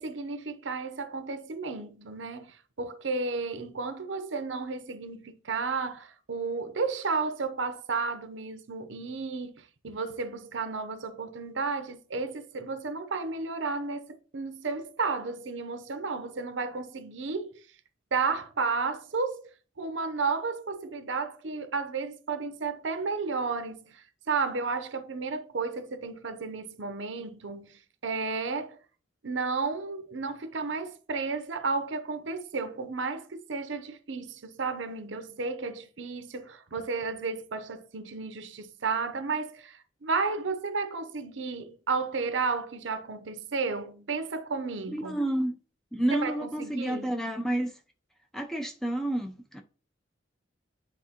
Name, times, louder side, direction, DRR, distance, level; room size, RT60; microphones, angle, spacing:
voice 1, 0.0-17.6 18.1-19.5 19.8-28.8 29.2-45.2 46.1-47.2, right 4 dB, 75° right, 0.7 m, -33 dB
voice 2, 44.9-45.6 45.9-47.7 48.3-49.6, right 1 dB, 5° left, 0.5 m, -30 dB
9.8 x 3.6 x 2.9 m
head